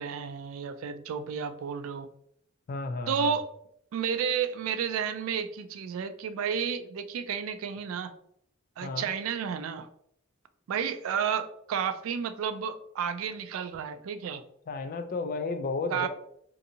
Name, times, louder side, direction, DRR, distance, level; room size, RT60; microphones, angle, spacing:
voice 1, 0.0-2.1 3.1-3.5 3.9-8.1 8.8-9.9 10.7-14.4 15.9-16.1, right 7 dB, 75° right, 10 dB, 0.3 m, -31 dB
voice 2, 2.7-3.4 8.8-9.1 14.7-16.1, left 3 dB, 45° left, 7 dB, 0.3 m, -33 dB
2.6 x 2.6 x 2.6 m, 0.70 s
head